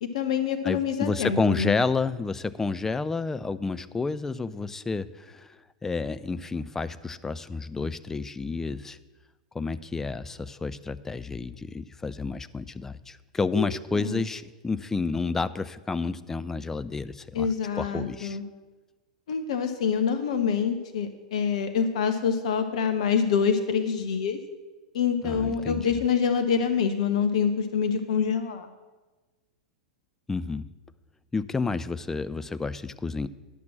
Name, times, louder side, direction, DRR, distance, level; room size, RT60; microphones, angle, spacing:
voice 1, 0.0-1.8 13.5-14.2 17.3-18.4 19.3-24.4 24.9-28.7, left 6 dB, 60° left, 8 dB, 0.7 m, -26 dB
voice 2, 0.6-5.6 5.8-9.0 9.5-17.5 17.8-18.4 25.2-25.9 30.3-30.7 31.3-33.3, left 4 dB, 10° left, 14 dB, 0.4 m, -30 dB
10.0 x 5.9 x 7.4 m, 1.2 s
figure-of-eight pair, 95°, 4 cm